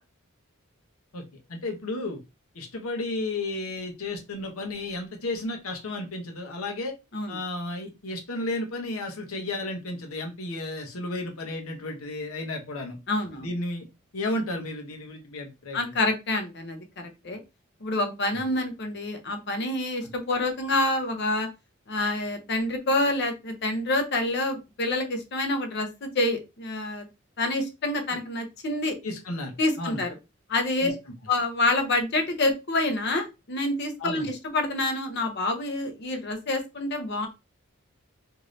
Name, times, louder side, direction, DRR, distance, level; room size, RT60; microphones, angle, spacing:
voice 1, 1.5-2.2 2.5-6.9 7.3-13.0 13.4-13.9 14.1-15.9 20.0-20.1 28.1-28.2 29.0-30.0 30.8-30.9 34.0-34.2, left 2 dB, 85° left, 2 dB, 0.9 m, -33 dB
voice 2, 13.1-13.5 15.7-17.4 17.8-21.5 21.9-27.1 27.4-28.9 29.6-30.2 30.5-30.9 31.3-37.3, left 2 dB, 50° left, 5 dB, 0.7 m, -27 dB
2.7 x 2.6 x 3.1 m, 0.25 s
head